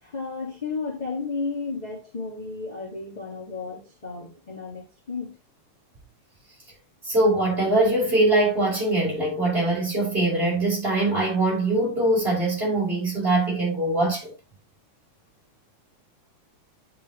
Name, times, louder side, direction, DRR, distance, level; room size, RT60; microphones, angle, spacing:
voice 1, 0.0-5.4, left 4 dB, 20° left, 1.4 m, -33 dB
voice 2, 7.1-14.3, right 2 dB, 15° right, 5.5 m, -22 dB
10.5 x 6.2 x 3.0 m
omnidirectional pair, 3.5 m